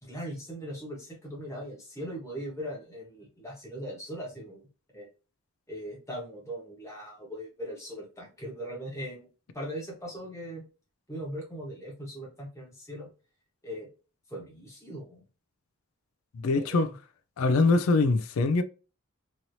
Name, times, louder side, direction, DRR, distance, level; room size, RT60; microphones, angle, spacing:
voice 1, 0.0-4.7 4.9-5.1 5.7-9.3 9.5-10.6 11.1-13.1 13.6-13.9 14.3-15.2 16.5-16.9, equal, 15° left, 1.1 m, -39 dB
voice 2, 16.3-16.9 17.4-18.6, left 3 dB, 75° left, 0.4 m, -23 dB
3.1 x 2.8 x 2.6 m
head